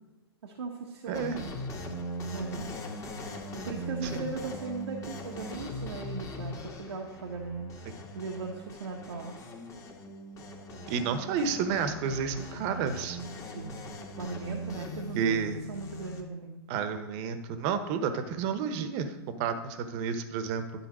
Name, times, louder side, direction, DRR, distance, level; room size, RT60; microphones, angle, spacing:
voice 1, 0.4-1.5 2.3-2.7 3.5-7.7 8.1-9.4 13.4-13.8 14.2-16.6, right 4 dB, 80° right, 0 dB, 1.2 m, -38 dB
sound 1, 1.1-16.2, equal, 25° left, 1.6 m, -40 dB
voice 2, 1.1-1.4 4.0-4.2 7.9-8.0 10.9-13.2 15.1-15.6 16.7-20.6, right 6 dB, 45° right, 9 dB, 1.1 m, -31 dB
11.0 x 4.0 x 6.2 m, 1.2 s
hypercardioid pair, 115°, 14 cm